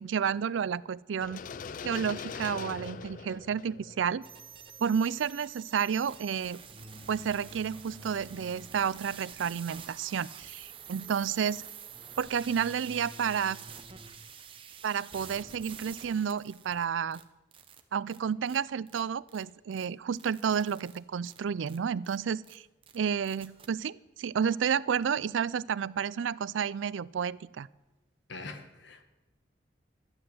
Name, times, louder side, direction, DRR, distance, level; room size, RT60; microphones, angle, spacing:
voice 1, 0.0-1.4 1.8-4.2 4.8-6.6 7.1-11.6 12.2-13.6 14.8-17.2 17.9-22.6 22.9-27.7, right 7 dB, 90° right, 20 dB, 0.4 m, -31 dB
contact metal cage shaking reverb long mono, 1.2-5.1, left 6 dB, 45° left, 0.3 m, -42 dB
sound 1, 1.5-5.0 6.7-9.8 11.9-14.1, right 1 dB, 5° left, 2.1 m, -52 dB
sound 2, 4.2-16.8 17.1-17.2 17.5-17.8 18.1-18.2 18.5-18.6 18.9-19.0 19.3-19.4 19.7-19.9 20.1-21.0 21.3-21.4 21.7-21.8 22.0-22.2 22.4-22.6 22.8-23.0 23.2-23.7, right 7 dB, 30° right, 0.9 m, -48 dB
voice 2, 28.3-29.1, left 3 dB, 70° left, 7 dB, 1.4 m, -43 dB
12.5 x 9.7 x 7.7 m, 1.1 s
head